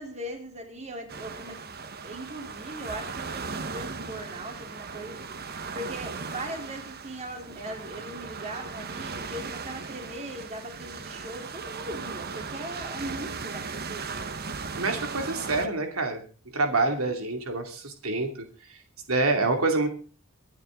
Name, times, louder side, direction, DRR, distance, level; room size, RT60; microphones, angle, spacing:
voice 1, 0.0-1.6 2.0-14.2, right 1 dB, 35° right, 3 dB, 3.5 m, -39 dB
sound 1, 1.1-15.7, right 4 dB, 50° right, 1.3 m, -37 dB
voice 2, 14.8-16.2 16.5-18.3 19.1-19.9, right 3 dB, 80° right, 5 dB, 2.6 m, -26 dB
24.0 x 9.9 x 3.8 m, 0.37 s
head